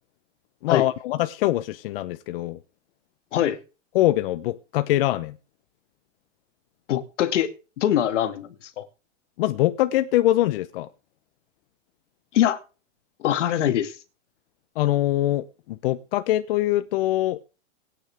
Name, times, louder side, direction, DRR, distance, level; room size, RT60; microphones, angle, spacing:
voice 1, 0.6-2.6 3.9-5.4 9.4-10.9 14.8-17.4, left 15 dB, 50° left, 0.9 m, -23 dB
voice 2, 6.9-7.5 7.8-8.9 12.3-12.6 13.2-13.9, left 11 dB, 75° left, 2.3 m, -23 dB
23.0 x 10.0 x 3.5 m
supercardioid pair, 160°, 37 cm